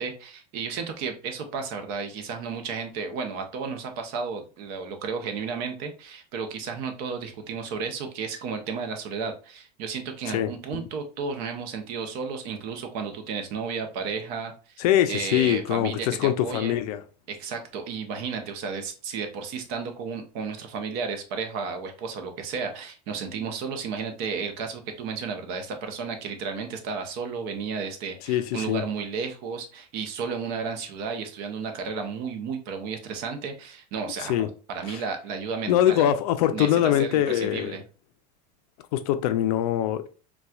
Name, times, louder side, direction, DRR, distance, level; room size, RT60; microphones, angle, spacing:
voice 1, 0.0-14.8 15.1-16.8 17.3-36.1 36.5-36.7 37.0-37.8, right 5 dB, 50° right, 0.7 m, -33 dB
voice 2, 10.3-10.9 14.8-17.0 28.2-28.8 34.2-34.5 34.9-35.0 35.7-37.8 38.9-40.1, left 11 dB, 70° left, 0.5 m, -23 dB
4.1 x 2.3 x 2.3 m
supercardioid pair, 145°, 20 cm